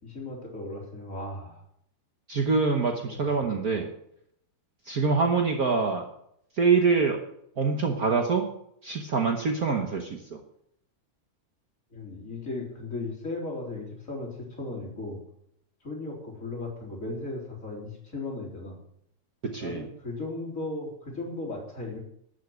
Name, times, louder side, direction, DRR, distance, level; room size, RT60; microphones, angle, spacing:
voice 1, 0.0-1.6 3.0-3.2 3.5-3.8 9.7-9.9 11.9-15.2 15.8-18.8 19.6-22.0, left 2 dB, 25° left, -2 dB, 4.1 m, -36 dB
voice 2, 2.3-3.9 4.9-6.0 6.5-7.2 7.6-8.4 8.8-10.4 19.5-19.8, right 4 dB, 85° right, 3 dB, 0.8 m, -25 dB
12.5 x 7.6 x 8.1 m, 0.72 s
omnidirectional pair, 3.5 m